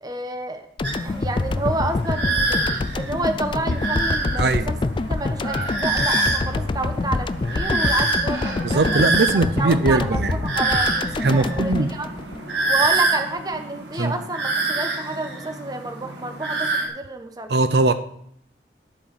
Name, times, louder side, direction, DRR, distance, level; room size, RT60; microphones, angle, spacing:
voice 1, 0.0-0.6 1.0-4.8 5.1-12.1 12.6-17.5, right 2 dB, 20° right, 6 dB, 1.0 m, -29 dB
sound 1, 0.8-13.0, left 3 dB, 30° left, 0.3 m, -26 dB
Stand Off, 0.8-16.9, right 3 dB, 90° right, 2.3 m, -26 dB
voice 2, 8.6-10.4 11.2-11.9 14.0-14.1 17.5-17.9, right 3 dB, 65° right, 11 dB, 0.6 m, -20 dB
12.5 x 5.5 x 6.7 m, 0.67 s
head